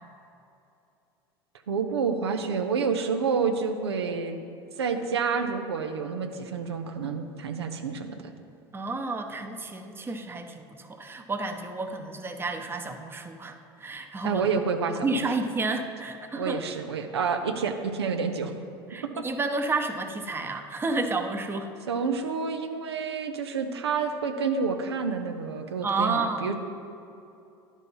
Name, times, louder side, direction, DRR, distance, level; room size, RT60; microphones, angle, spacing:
voice 1, 1.7-4.4 4.8-8.1 14.2-15.2 16.4-18.5 19.2-19.3 21.9-26.5, right 5 dB, 90° right, 5 dB, 0.6 m, -28 dB
voice 2, 8.7-14.4 15.0-16.6 18.9-21.7 25.8-26.5, right 3 dB, 15° right, 5 dB, 0.8 m, -31 dB
10.5 x 4.2 x 5.4 m, 2.7 s
hypercardioid pair, 80°, 13 cm